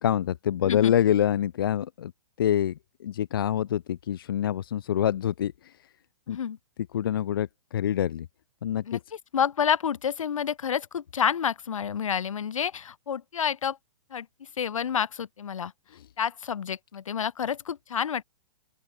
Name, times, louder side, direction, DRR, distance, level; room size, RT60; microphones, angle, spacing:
voice 1, 0.0-2.1 2.4-5.7 6.3-6.4 6.9-8.3 8.6-9.0 15.9-16.0, left 10 dB, 40° left, 0.8 m, -26 dB
voice 2, 0.6-0.9 6.3-6.6 8.8-9.0 9.3-13.8 14.1-14.3 14.6-15.7 16.2-18.2, left 8 dB, 70° left, 2.5 m, -29 dB
open air
hypercardioid pair, 180°, 17 cm